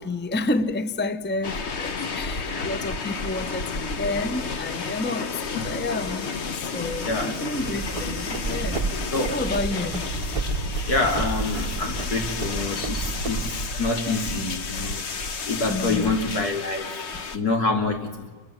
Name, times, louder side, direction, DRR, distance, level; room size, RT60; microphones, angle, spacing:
voice 1, 0.0-8.9 9.3-10.1 15.7-16.2, left 2 dB, 10° left, 0.7 m, -30 dB
sound 1, 1.4-17.4, left 4 dB, 50° left, 1.3 m, -31 dB
voice 2, 7.0-7.4 9.1-9.3 9.7-9.9 10.9-15.1 15.4-16.9 17.3-18.2, left 3 dB, 85° left, 3.5 m, -27 dB
Run, 7.6-13.6, right 4 dB, 30° right, 0.8 m, -31 dB
29.0 x 26.0 x 7.3 m
omnidirectional pair, 1.6 m